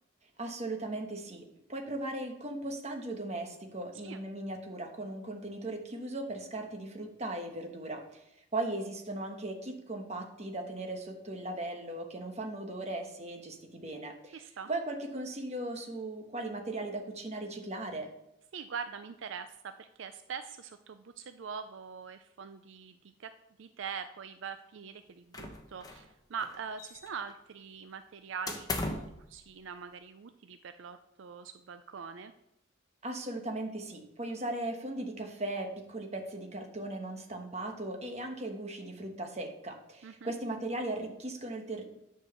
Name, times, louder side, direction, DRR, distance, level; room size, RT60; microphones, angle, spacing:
voice 1, 0.4-1.4 1.7-8.2 8.5-14.4 14.7-18.1 33.0-41.8, right 2 dB, 35° right, 3 dB, 1.2 m, -38 dB
voice 2, 14.3-14.7 18.5-23.3 23.6-32.3 40.0-40.3, right 6 dB, 70° right, 10 dB, 0.4 m, -43 dB
sound 1, 25.3-26.1 26.4-27.3 28.5-29.2, left 2 dB, 20° left, 0.9 m, -37 dB
9.8 x 4.6 x 6.8 m, 0.83 s
head